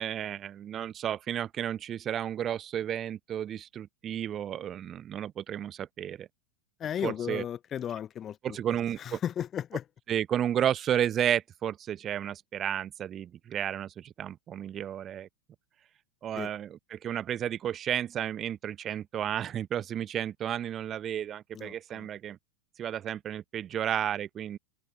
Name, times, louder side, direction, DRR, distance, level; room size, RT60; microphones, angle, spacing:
voice 1, 0.0-6.3 7.0-7.4 8.4-9.2 10.1-15.3 16.2-22.4 22.8-24.6, right 10 dB, 25° right, 0.9 m, -32 dB
voice 2, 6.8-8.6 9.0-9.8 16.3-16.5 21.5-22.1, left 9 dB, 25° left, 0.5 m, -35 dB
figure-of-eight pair, 90°, 0 cm